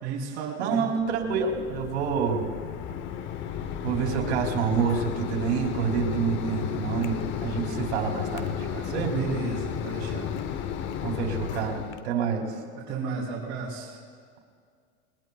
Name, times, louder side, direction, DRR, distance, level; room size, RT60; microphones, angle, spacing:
voice 1, 0.0-0.8 8.7-10.3 12.7-14.0, right 5 dB, 50° right, -8 dB, 3.5 m, -33 dB
voice 2, 0.6-2.5 3.8-9.1 11.0-12.5, right 6 dB, 85° right, 2 dB, 2.7 m, -28 dB
Mechanisms, 1.0-12.0, left 8 dB, 35° left, 0.8 m, -33 dB
21.0 x 20.0 x 2.3 m, 2.1 s
supercardioid pair, 140°, 32 cm